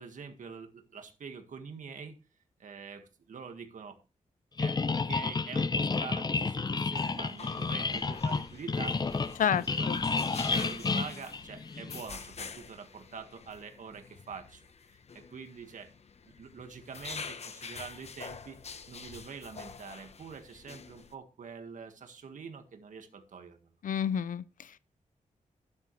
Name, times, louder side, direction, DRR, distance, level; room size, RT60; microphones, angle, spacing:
voice 1, 0.0-2.2 2.6-4.0 4.6-9.9 10.3-14.7 15.1-15.9 16.3-18.6 18.9-23.6, right 5 dB, 70° right, 1.7 m, -45 dB
sound 1, 4.6-12.0, left 4 dB, 30° left, 0.6 m, -31 dB
sound 2, 6.9-21.1, left 5 dB, 50° left, 1.0 m, -46 dB
voice 2, 9.4-10.0 23.8-24.8, left 8 dB, 80° left, 0.5 m, -30 dB
12.5 x 9.6 x 3.2 m
wide cardioid pair, 110°, 13 cm